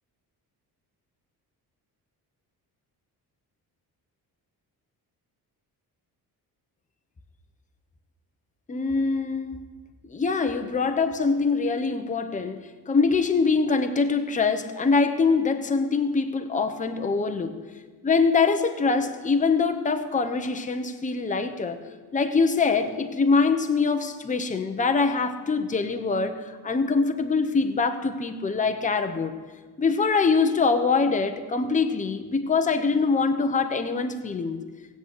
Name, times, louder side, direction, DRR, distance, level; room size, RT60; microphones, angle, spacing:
voice 1, 8.7-9.6 10.1-17.6 18.0-21.8 22.1-29.3 29.8-34.6, left 4 dB, 20° left, 7 dB, 0.9 m, -24 dB
18.0 x 8.2 x 8.2 m, 1.4 s
cardioid pair, 170°, 39 cm